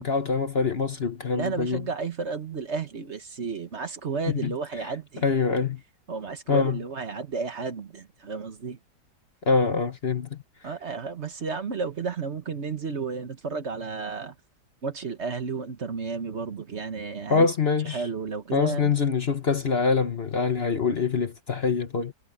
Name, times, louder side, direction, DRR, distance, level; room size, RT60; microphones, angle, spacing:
voice 1, 0.0-1.9 4.4-4.5 5.2-5.8 6.5-6.8 9.5-10.4 17.3-18.0 18.5-22.1, left 5 dB, 40° left, 1.1 m, -24 dB
voice 2, 1.3-5.2 6.1-8.8 10.6-14.3 14.8-17.5 17.8-18.9, right 5 dB, 45° right, 1.4 m, -32 dB
omnidirectional pair, 1.7 m